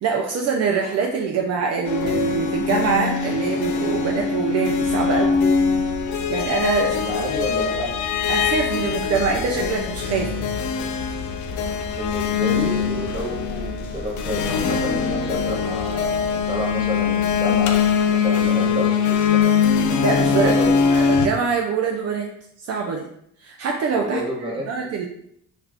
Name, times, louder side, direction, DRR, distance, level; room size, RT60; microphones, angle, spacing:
voice 1, 0.0-5.4 6.3-7.3 8.3-10.5 20.0-20.6 20.9-22.3 22.7-23.1 23.4-25.1, right 5 dB, 55° right, 0 dB, 0.4 m, -24 dB
sound 1, 1.8-21.3, left 6 dB, 75° left, 0.5 m, -22 dB
sound 2, 4.8-17.9, left 2 dB, 45° left, 0.7 m, -38 dB
voice 2, 6.8-7.9 12.0-19.5 20.3-20.9 24.0-25.1, right 1 dB, 15° right, -2 dB, 0.9 m, -30 dB
2.5 x 2.3 x 3.3 m, 0.70 s
cardioid pair, 90°, 30 cm